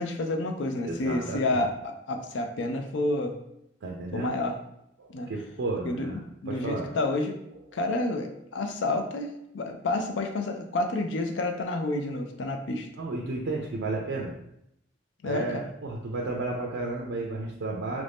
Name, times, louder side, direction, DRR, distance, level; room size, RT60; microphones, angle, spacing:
voice 1, 0.0-3.3 4.1-4.6 5.1-5.3 5.8-6.1 6.4-7.4 7.7-12.9 15.2-15.7, left 2 dB, 70° left, 5 dB, 0.4 m, -29 dB
voice 2, 0.8-1.6 3.8-4.5 5.0-6.9 7.7-7.8 13.0-14.3 15.2-18.0, right 2 dB, 75° right, -1 dB, 0.5 m, -33 dB
3.0 x 2.6 x 3.4 m, 0.79 s
head